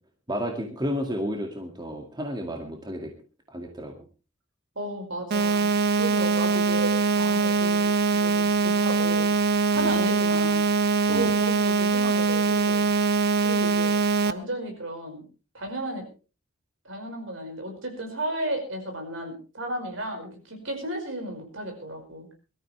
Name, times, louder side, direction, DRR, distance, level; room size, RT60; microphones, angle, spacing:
voice 1, 0.3-3.1 3.5-3.9 9.7-10.0 11.1-11.3, equal, 20° right, 2 dB, 2.1 m, -32 dB
voice 2, 4.8-9.3 9.7-10.6 11.0-12.8 13.4-14.0 14.2-15.3 15.5-16.1 16.9-22.3, right 1 dB, 65° right, 3 dB, 5.2 m, -33 dB
sound 1, 5.3-14.3, right 4 dB, 50° right, 0.7 m, -23 dB
22.5 x 13.5 x 3.3 m, 0.35 s
head